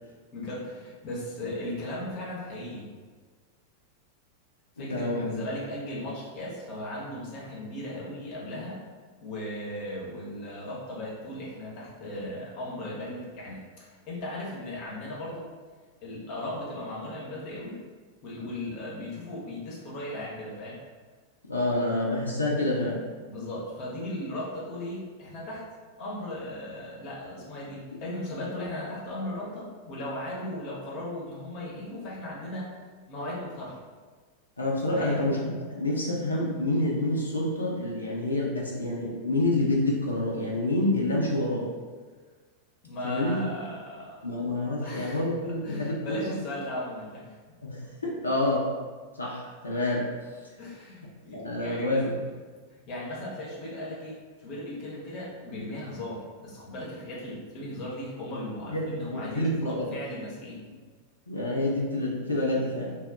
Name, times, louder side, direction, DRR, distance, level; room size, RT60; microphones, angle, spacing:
voice 1, 0.3-2.9 4.8-8.8 9.2-15.4 16.0-17.8 18.2-20.8 23.2-25.6 26.0-32.7 33.1-33.8 34.9-35.2 42.8-44.2 44.8-47.3 50.6-52.1 52.7-60.6, left 1 dB, 40° left, -4 dB, 0.8 m, -37 dB
voice 2, 4.8-5.3 21.5-23.0 34.6-35.4 35.7-41.7 43.0-43.4 44.2-46.3 47.6-48.7 49.2-50.1 51.3-52.2 58.7-59.9 61.3-62.9, left 1 dB, 80° left, -3 dB, 0.4 m, -28 dB
2.2 x 2.0 x 3.7 m, 1.5 s
figure-of-eight pair, 90°, 0 cm